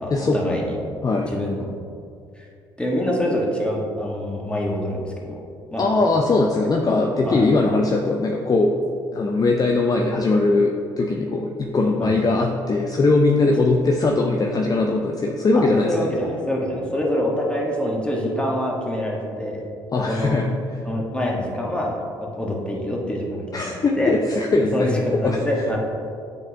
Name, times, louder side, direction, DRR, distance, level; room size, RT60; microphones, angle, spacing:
voice 1, 0.0-0.8 1.3-1.7 2.4-2.5 2.8-5.3 5.7-5.8 7.2-7.5 12.0-12.1 15.5-19.7 19.9-20.3 20.8-24.1 24.7-25.8, equal, 10° left, -2 dB, 1.4 m, -25 dB
voice 2, 5.8-8.7 9.1-16.1 19.9-20.5 23.5-25.4, left 3 dB, 30° left, 2 dB, 0.5 m, -20 dB
8.9 x 4.0 x 2.8 m, 2.4 s
hypercardioid pair, 55°, 12 cm